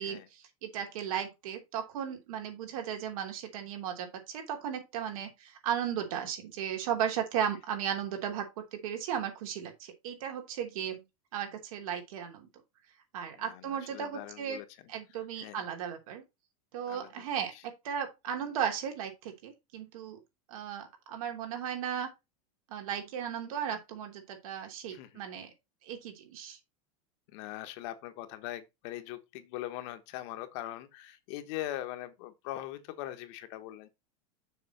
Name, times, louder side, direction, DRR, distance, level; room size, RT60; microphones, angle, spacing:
voice 1, 0.0-11.0 11.3-12.5 13.1-14.6 14.9-16.2 16.7-20.2 20.5-22.1 22.7-25.5 25.8-26.6, right 9 dB, 70° right, 3.3 m, -36 dB
voice 2, 13.3-14.6 15.4-15.6 16.9-17.2 17.5-17.6 24.9-25.1 27.3-33.9, left 14 dB, 50° left, 1.3 m, -41 dB
6.8 x 6.2 x 4.3 m
supercardioid pair, 165°, 18 cm